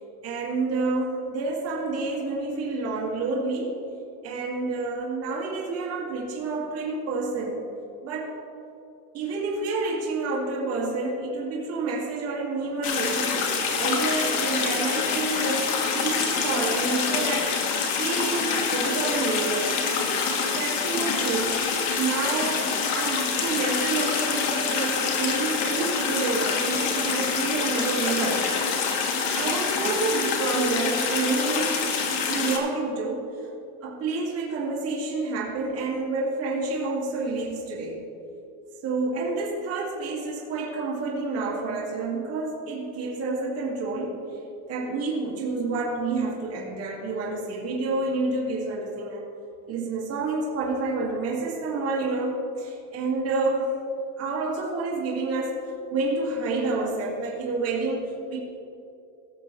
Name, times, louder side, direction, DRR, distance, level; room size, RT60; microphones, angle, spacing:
voice 1, 0.2-3.8 4.2-7.6 8.0-8.4 9.1-17.6 18.0-19.9 20.4-28.6 29.3-31.9 32.3-33.5 33.8-38.0 38.8-44.2 44.7-49.3 49.7-53.7 54.2-55.6 55.9-58.4, right 3 dB, 35° right, -5 dB, 2.2 m, -29 dB
sound 1, 12.8-32.6, left 5 dB, 65° left, 1.6 m, -26 dB
18.0 x 6.8 x 3.2 m, 2.8 s
cardioid pair, 170°, 42 cm